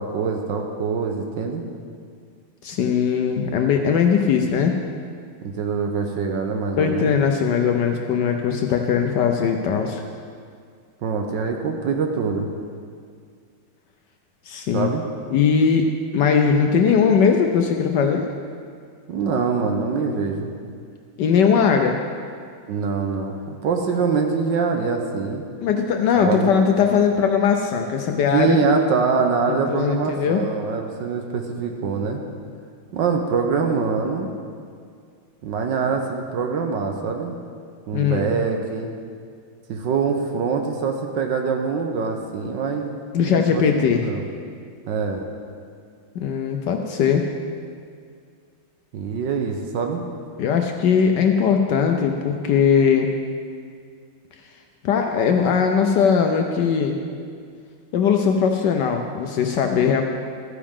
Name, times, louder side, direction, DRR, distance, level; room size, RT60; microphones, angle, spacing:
voice 1, 0.0-1.6 5.4-7.2 11.0-12.5 14.7-15.0 19.1-20.5 22.7-25.4 26.2-26.5 28.3-32.2 32.9-34.3 35.4-37.3 37.9-38.9 39.7-44.2 44.9-45.2 48.9-50.1, right 5 dB, 65° right, 3 dB, 1.4 m, -24 dB
voice 2, 2.6-4.8 6.8-10.0 14.5-14.9 15.3-18.3 21.2-22.0 25.6-28.6 29.5-30.4 37.9-38.3 43.1-44.1 46.1-47.3 50.4-53.1 54.8-57.0 57.9-60.0, left 6 dB, 70° left, 4 dB, 1.1 m, -19 dB
14.0 x 9.6 x 3.7 m, 2.2 s
omnidirectional pair, 2.3 m